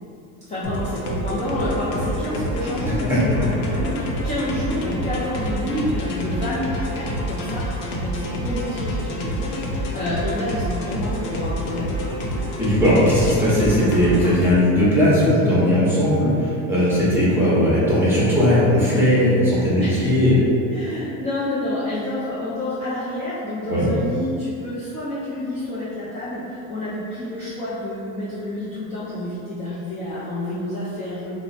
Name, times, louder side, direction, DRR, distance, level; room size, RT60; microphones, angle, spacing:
voice 1, 0.5-12.0 19.8-31.3, left 1 dB, 20° left, -11 dB, 0.5 m, -29 dB
sound 1, 0.6-14.4, equal, 90° left, 0.7 m, -27 dB
voice 2, 12.6-20.4 23.7-23.9, equal, 5° right, -9 dB, 0.9 m, -18 dB
2.9 x 2.1 x 4.0 m, 2.6 s
cardioid pair, 140°, 40 cm